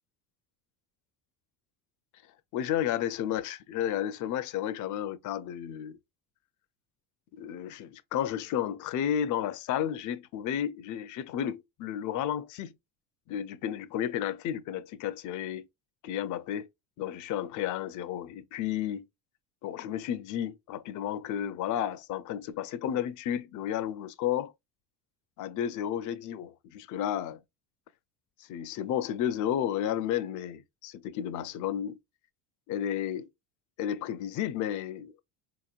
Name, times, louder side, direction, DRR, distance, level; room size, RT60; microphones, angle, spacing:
voice 1, 2.5-6.0 7.4-12.7 13.3-15.7 16.0-16.7 17.0-19.1 19.6-24.5 25.4-27.4 28.5-32.0 32.7-33.3 33.8-35.1, left 10 dB, 40° left, 0.5 m, -32 dB
4.1 x 2.9 x 2.4 m
supercardioid pair, 85°, 49 cm